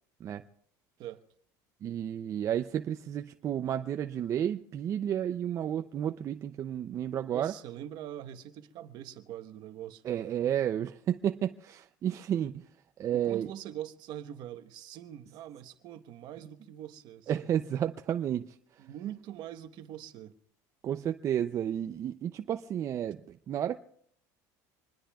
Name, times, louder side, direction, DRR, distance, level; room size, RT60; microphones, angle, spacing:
voice 1, 1.8-7.5 10.0-12.7 13.0-13.5 17.3-18.9 20.8-23.8, right 10 dB, 35° right, 0.5 m, -32 dB
voice 2, 7.3-10.3 13.1-17.5 18.8-20.3, right 11 dB, 55° right, 1.2 m, -43 dB
25.0 x 20.5 x 2.4 m
cardioid pair, 140°, 9 cm